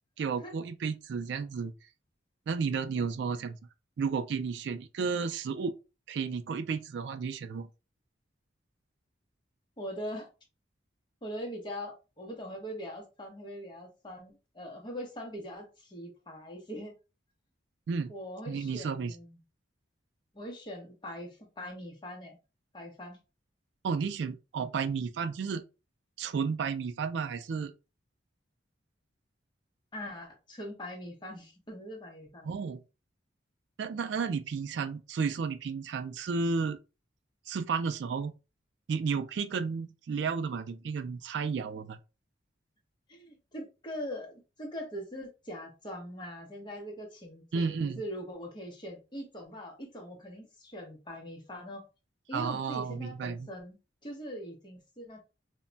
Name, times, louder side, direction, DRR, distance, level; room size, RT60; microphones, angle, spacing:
voice 1, 0.2-1.7 2.5-3.6 4.0-5.7 6.1-7.7 17.9-18.1 18.5-19.2 23.8-25.6 26.2-27.7 32.4-32.8 33.8-36.8 37.5-38.3 38.9-42.0 47.5-48.0 52.3-53.5, right 5 dB, 60° right, 0.3 m, -32 dB
voice 2, 9.8-10.3 11.2-17.0 18.1-19.4 20.3-22.4 22.7-23.2 29.9-32.4 43.1-51.8 52.3-53.8 54.0-55.2, equal, 25° left, 0.8 m, -42 dB
2.1 x 2.1 x 3.8 m
head